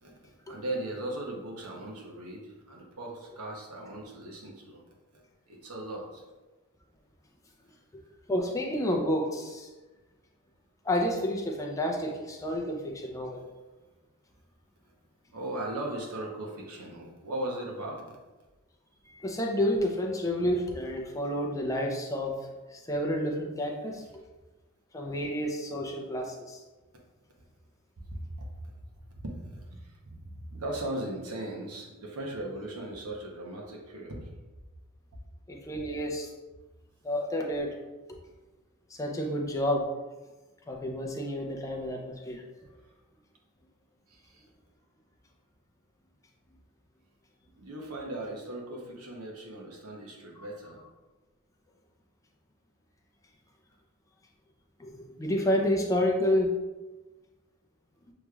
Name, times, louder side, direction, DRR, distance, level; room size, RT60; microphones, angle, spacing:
voice 1, 0.0-4.8 5.5-6.2 15.3-18.2 28.1-28.5 29.2-34.3 35.7-35.8 44.1-44.4 47.6-50.8, right 1 dB, 85° right, -1 dB, 0.9 m, -38 dB
voice 2, 8.3-9.7 10.8-13.4 19.1-24.0 24.9-26.6 35.5-36.3 37.0-37.8 38.9-39.9 40.7-42.4 54.8-56.5, left 1 dB, 15° left, 1 dB, 0.5 m, -30 dB
6.5 x 3.0 x 2.3 m, 1.2 s
head